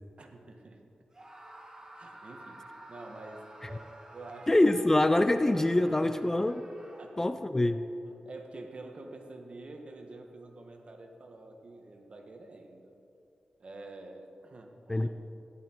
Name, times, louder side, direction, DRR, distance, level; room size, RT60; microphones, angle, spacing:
voice 1, 0.2-0.8 2.0-4.5 5.9-6.2 7.0-7.1 8.0-13.0 13.6-15.1, right 2 dB, 50° right, 3 dB, 1.5 m, -48 dB
Screaming, 1.1-7.4, right 1 dB, 25° right, 1.7 m, -51 dB
voice 2, 4.5-6.6 7.2-7.8 14.9-15.1, left 1 dB, 20° left, 10 dB, 0.5 m, -25 dB
14.0 x 11.0 x 4.5 m, 2.7 s
wide cardioid pair, 80°, 2 cm